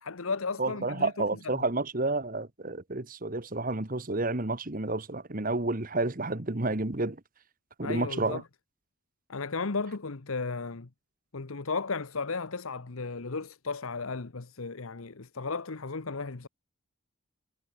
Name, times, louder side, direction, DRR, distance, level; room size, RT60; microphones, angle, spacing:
voice 1, 0.0-1.7 7.8-8.4 9.3-10.9 11.3-16.5, left 4 dB, 80° left, 1.1 m, -35 dB
voice 2, 0.6-7.2 7.8-8.4, right 2 dB, 40° right, 1.5 m, -30 dB
head